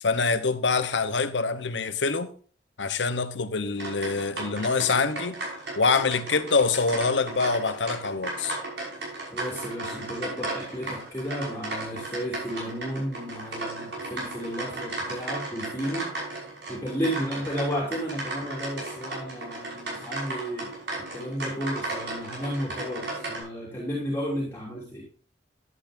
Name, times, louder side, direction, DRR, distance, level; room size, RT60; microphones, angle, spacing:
voice 1, 0.0-2.3 2.8-5.4 5.7-8.6, left 4 dB, 85° left, 1.0 m, -25 dB
sound 1, 3.8-23.4, right 2 dB, 75° right, 5.8 m, -35 dB
voice 2, 9.3-16.1 16.7-20.7 21.0-25.0, equal, 15° left, 3.1 m, -33 dB
11.0 x 10.5 x 2.6 m
head